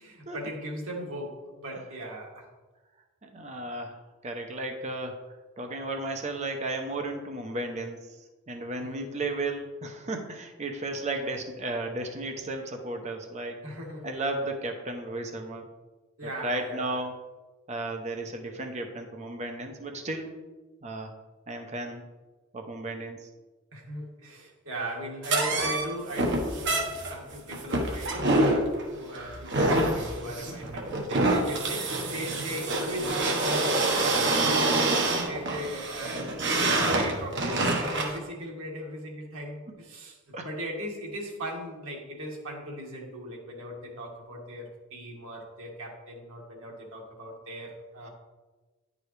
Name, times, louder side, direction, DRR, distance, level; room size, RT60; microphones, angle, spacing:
voice 1, 0.0-2.5 8.8-9.2 13.6-14.2 16.2-17.0 23.7-33.8 34.2-48.1, equal, 80° right, -2 dB, 1.8 m, -38 dB
voice 2, 3.2-3.9 4.2-5.2 5.6-8.0 8.5-13.6 14.0-15.6 16.4-17.1 17.7-20.3 20.8-21.1 21.5-22.0 22.5-23.3 40.3-40.5, right 2 dB, 35° right, 4 dB, 0.7 m, -34 dB
sound 1, 25.2-38.2, right 2 dB, 60° right, 1.2 m, -26 dB
9.8 x 4.8 x 3.2 m, 1.2 s
head